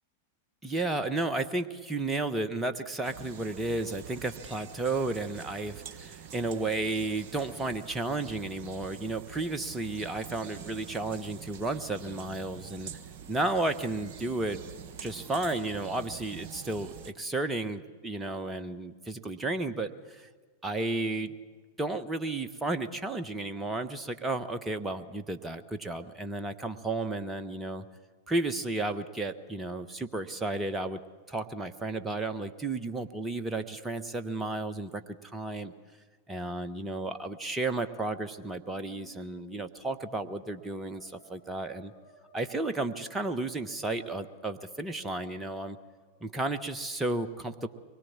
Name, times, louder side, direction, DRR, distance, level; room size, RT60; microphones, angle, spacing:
voice 1, 0.6-12.9 13.3-14.7 15.0-20.3 20.6-21.3 21.8-27.8 28.3-31.0 31.3-35.7 36.3-41.9 42.3-45.8 46.2-47.7, right 2 dB, 10° right, 8 dB, 1.2 m, -33 dB
sound 1, 3.0-17.1, right 8 dB, 40° right, 1.3 m, -46 dB
Musical instrument, 38.5-46.6, left 3 dB, 60° left, 6.5 m, -60 dB
24.5 x 21.5 x 7.5 m, 1.5 s
figure-of-eight pair, 95°, 0 cm